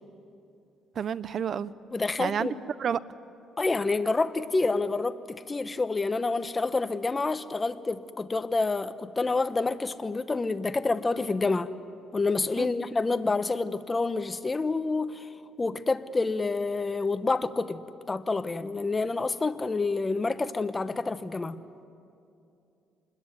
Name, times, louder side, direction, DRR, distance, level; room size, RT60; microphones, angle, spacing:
voice 1, 0.9-1.7 2.2-2.5 2.8-3.0 12.6-12.7, right 8 dB, 50° right, 0.7 m, -29 dB
voice 2, 1.9-2.5 3.6-11.7 12.1-15.3 15.6-21.6, left 3 dB, 20° left, 1.0 m, -28 dB
26.5 x 21.5 x 9.5 m
cardioid pair, 105°, 0 cm